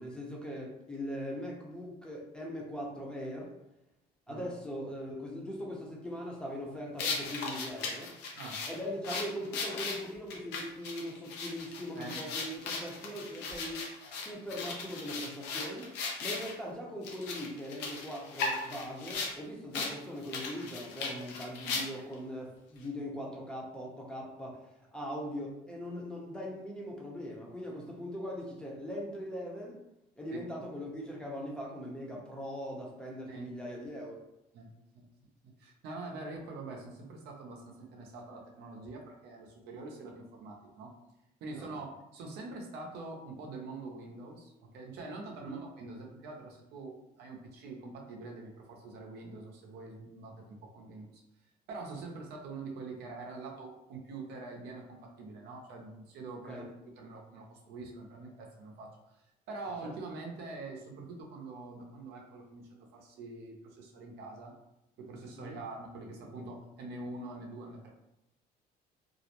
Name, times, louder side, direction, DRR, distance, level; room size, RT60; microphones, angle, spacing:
voice 1, 0.0-3.5 4.3-8.2 8.7-13.9 14.1-24.6 24.9-29.8 30.2-34.2 41.5-41.8 45.4-45.6 56.5-56.7 59.8-59.9 65.4-65.6, equal, 5° left, -2 dB, 0.6 m, -40 dB
sound 1, 7.0-16.5 17.0-19.3 19.7-19.9 20.2-22.1, left 4 dB, 85° left, 0.6 m, -37 dB
voice 2, 35.4-40.9 41.4-41.9 42.1-51.1 51.7-56.7 57.0-58.9 59.5-64.5 65.0-67.9, right 3 dB, 75° right, 0 dB, 0.6 m, -44 dB
2.4 x 2.0 x 2.8 m, 0.90 s
cardioid pair, 110°, 17 cm